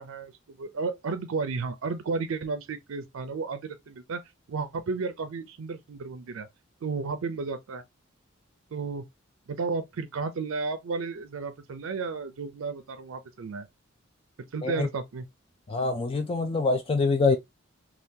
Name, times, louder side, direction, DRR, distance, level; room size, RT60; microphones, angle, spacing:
voice 1, 0.0-4.2 4.5-6.5 6.8-7.8 8.7-9.0 9.5-13.7 14.5-15.3, right 4 dB, 85° right, 0.5 m, -33 dB
voice 2, 15.7-17.4, left 3 dB, 30° left, 0.4 m, -25 dB
3.6 x 2.4 x 2.7 m
head